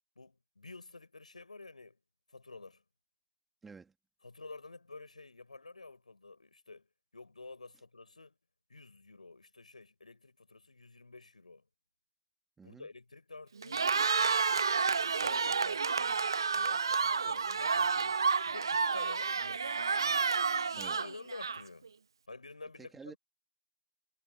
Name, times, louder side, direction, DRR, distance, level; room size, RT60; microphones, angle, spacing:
voice 1, 0.2-2.0 2.3-2.8 4.2-6.9 7.1-8.4 8.7-11.6 12.6-13.9 15.2-18.2 18.4-19.9 20.7-21.9 22.3-23.2, left 3 dB, 40° left, 7.0 m, -50 dB
voice 2, 3.6-3.9 12.6-12.9 20.8-21.0 22.8-23.1, right 5 dB, ahead, 2.5 m, -50 dB
Cheering, 13.6-21.9, right 5 dB, 25° right, 1.5 m, -30 dB
figure-of-eight pair, 170°, 5 cm